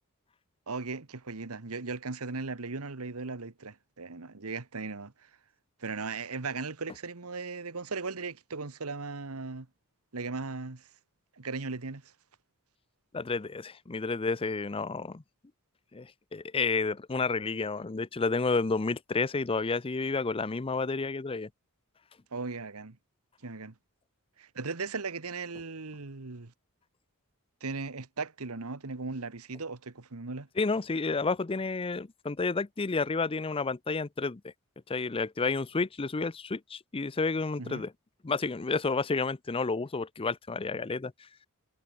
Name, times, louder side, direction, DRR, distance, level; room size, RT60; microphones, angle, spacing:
voice 1, 0.7-5.3 5.8-9.7 10.1-10.9 11.4-12.1 22.3-23.0 23.4-23.7 24.4-26.5 27.6-30.5 37.6-37.8, right 4 dB, 75° right, 1.4 m, -37 dB
voice 2, 13.1-15.2 15.9-21.5 30.6-34.4 34.9-37.9 38.2-41.1, left 4 dB, 25° left, 0.6 m, -30 dB
head